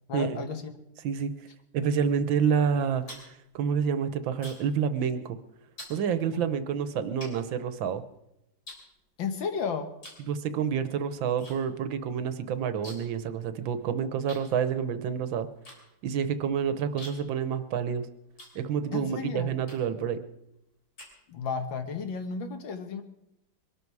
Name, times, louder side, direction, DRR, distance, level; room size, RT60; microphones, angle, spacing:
voice 1, 0.1-0.6 6.3-6.5 9.2-9.9 18.9-19.5 21.3-23.0, left 5 dB, 80° left, 7 dB, 2.1 m, -33 dB
voice 2, 1.7-3.0 3.6-5.4 5.9-8.0 10.3-15.5 16.0-18.1 18.6-20.2, right 7 dB, 80° right, 12 dB, 1.7 m, -28 dB
sound 1, 2.8-4.8 5.1-5.4 5.8-6.0 6.6-6.7 7.2-8.2 8.6-9.5 10.0-10.3 10.6-11.6 11.8-11.9 12.2-13.2 13.5-13.6 14.3-19.0 19.6-20.1 20.5-21.6, left 1 dB, 50° left, 3.9 m, -48 dB
22.5 x 12.5 x 4.8 m, 0.85 s
omnidirectional pair, 2.1 m